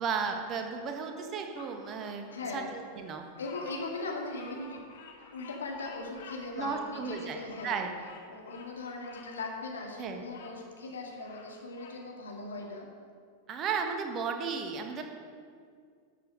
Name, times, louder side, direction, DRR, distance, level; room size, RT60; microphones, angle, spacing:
voice 1, 0.0-3.2 6.6-7.9 10.0-10.2 13.5-15.0, right 5 dB, 30° right, 4 dB, 1.5 m, -34 dB
Bird vocalization bird call bird song, 1.6-10.6 11.0-12.0, left 5 dB, 55° left, 1.7 m, -52 dB
voice 2, 2.3-2.7 3.4-4.8 5.3-7.8 8.3-12.9, left 3 dB, 70° left, 0 dB, 2.1 m, -39 dB
12.0 x 7.5 x 6.4 m, 2.1 s
figure-of-eight pair, 90°, 0 cm